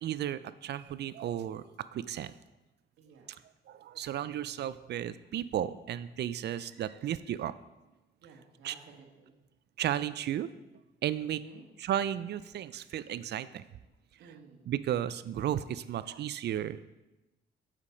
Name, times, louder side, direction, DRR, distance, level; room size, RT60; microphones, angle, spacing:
voice 1, 0.0-2.3 3.7-7.5 8.6-8.7 9.8-10.5 11.0-11.4 11.8-13.6 14.7-16.8, right 11 dB, 60° right, 15 dB, 0.4 m, -34 dB
voice 2, 3.0-3.3 8.2-9.3 11.2-11.6 14.2-14.7, right 4 dB, 90° right, 0 dB, 1.4 m, -54 dB
8.3 x 5.2 x 5.2 m, 1.0 s
cardioid pair, 90°, 20 cm